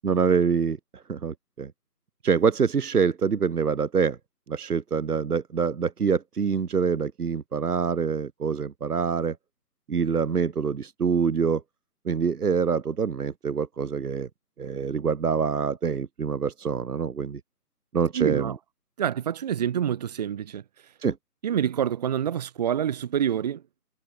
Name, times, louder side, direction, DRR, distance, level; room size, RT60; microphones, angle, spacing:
voice 1, 0.0-0.8 1.1-1.7 2.2-4.2 4.5-9.3 9.9-11.6 12.0-14.3 14.6-17.4 17.9-18.5 21.0-21.2, right 6 dB, 70° right, 1.7 m, -25 dB
voice 2, 18.1-18.6 19.0-20.6 21.4-23.6, right 9 dB, 25° right, 2.9 m, -27 dB
hypercardioid pair, 170°, 48 cm